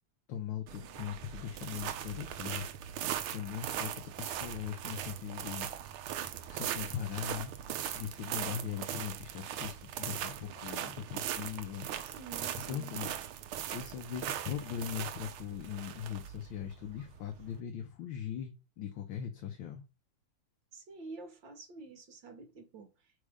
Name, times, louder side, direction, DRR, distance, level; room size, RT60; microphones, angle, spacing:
voice 1, 0.3-2.7 3.3-5.7 6.4-7.5 7.9-11.9 12.5-13.1 13.7-19.8, left 9 dB, 70° left, 1.6 m, -40 dB
sound 1, 0.7-17.6, right 10 dB, 85° right, 1.6 m, -40 dB
voice 2, 12.0-12.9 20.7-23.1, right 3 dB, 60° right, 2.2 m, -49 dB
5.4 x 5.0 x 4.9 m
omnidirectional pair, 2.3 m